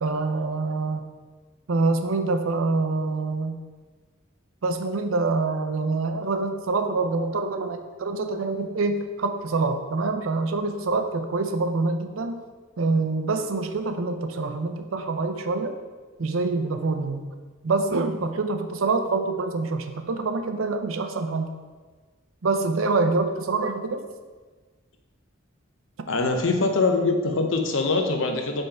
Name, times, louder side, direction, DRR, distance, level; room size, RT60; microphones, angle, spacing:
voice 1, 0.0-1.1 1.7-3.5 4.6-12.4 12.8-15.7 16.2-17.3 17.6-21.5 22.4-24.0, right 3 dB, 80° right, 7 dB, 0.6 m, -26 dB
voice 2, 26.1-28.6, left 3 dB, 70° left, 4 dB, 0.7 m, -23 dB
5.4 x 3.5 x 5.5 m, 1.4 s
head